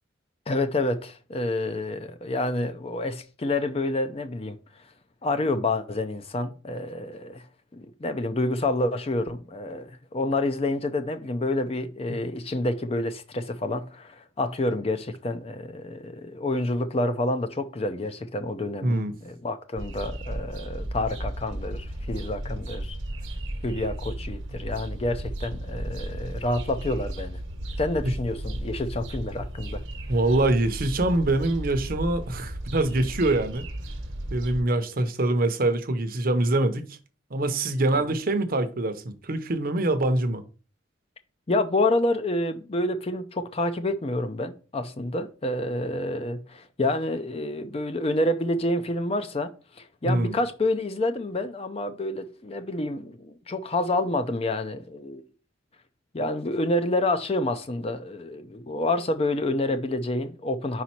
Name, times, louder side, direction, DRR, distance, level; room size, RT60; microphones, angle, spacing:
voice 1, 0.5-4.6 5.2-7.4 7.7-23.0 23.6-27.4 27.8-29.8 37.9-38.0 41.5-49.5 49.8-55.2 56.1-60.8, left 2 dB, 30° left, 0.5 m, -28 dB
voice 2, 18.8-19.1 30.1-33.7 34.3-37.0 37.3-40.4 50.0-50.3, right 2 dB, 50° right, 0.7 m, -24 dB
sound 1, 19.8-34.6, right 1 dB, 85° right, 1.0 m, -34 dB
5.1 x 4.2 x 4.4 m
head